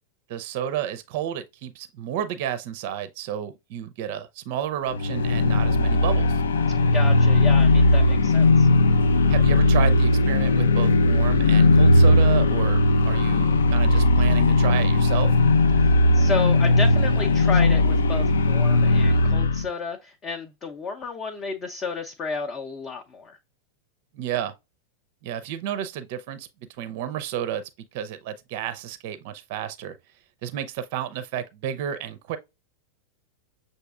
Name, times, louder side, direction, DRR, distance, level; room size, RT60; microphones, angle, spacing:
voice 1, 0.3-6.4 9.3-15.4 24.1-24.5 25.2-26.5 26.8-27.6 27.9-30.0 30.4-32.4, right 10 dB, 45° right, 0.5 m, -31 dB
sound 1, 4.9-19.7, left 2 dB, 65° left, 0.4 m, -18 dB
voice 2, 6.9-8.7 15.8-23.4, left 4 dB, 25° left, 0.6 m, -32 dB
6.8 x 2.6 x 2.3 m
figure-of-eight pair, 90°, 0 cm